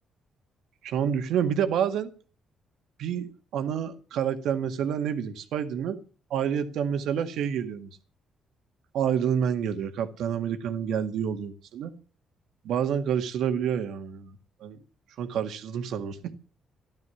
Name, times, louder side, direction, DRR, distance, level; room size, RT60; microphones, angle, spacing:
voice 1, 0.8-2.1 3.0-6.0 6.3-7.9 8.9-11.9 12.6-14.8 15.2-16.4, right 8 dB, 80° right, 2.0 m, -28 dB
15.0 x 12.0 x 7.2 m
cardioid pair, 90°, 0 cm